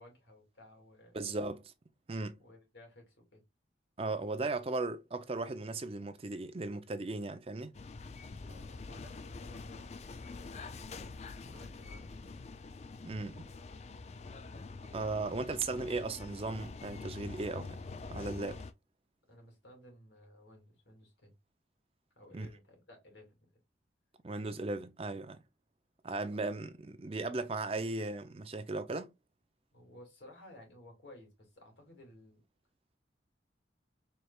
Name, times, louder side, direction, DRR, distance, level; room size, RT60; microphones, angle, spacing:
voice 1, 0.0-1.2 2.4-3.4 8.4-10.7 11.4-12.3 19.3-21.3 22.2-23.6 26.3-26.5 29.7-32.4, left 1 dB, 75° left, 2.2 m, -56 dB
voice 2, 1.1-1.7 2.1-2.4 4.0-7.7 13.0-13.5 14.9-17.8 18.1-18.6 22.3-22.5 24.2-25.4 26.0-29.1, right 3 dB, 30° right, 0.5 m, -37 dB
sound 1, 7.7-18.7, left 3 dB, 35° left, 0.3 m, -46 dB
4.5 x 3.3 x 2.3 m
head